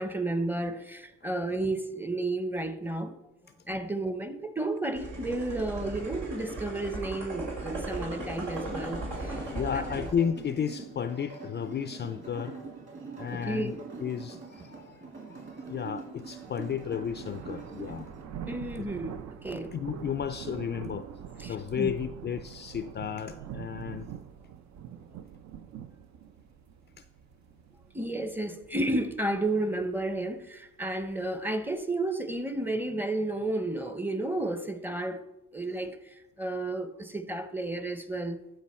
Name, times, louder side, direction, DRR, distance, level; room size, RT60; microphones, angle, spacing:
voice 1, 0.0-3.2 3.7-9.8 13.3-13.7 18.5-19.7 21.4-21.9 27.9-35.2 35.5-38.4, right 2 dB, 5° right, 0.7 m, -32 dB
sound 1, 4.9-10.1, right 2 dB, 85° right, 3.0 m, -37 dB
sound 2, 7.8-18.2, right 4 dB, 40° right, 2.8 m, -44 dB
voice 2, 9.5-12.6 13.2-18.1 19.7-21.1 21.4-24.1 27.0-27.1, left 8 dB, 35° left, 0.4 m, -33 dB
sound 3, 15.9-31.8, right 9 dB, 65° right, 0.6 m, -45 dB
13.0 x 4.8 x 4.3 m
cardioid pair, 90°, 30 cm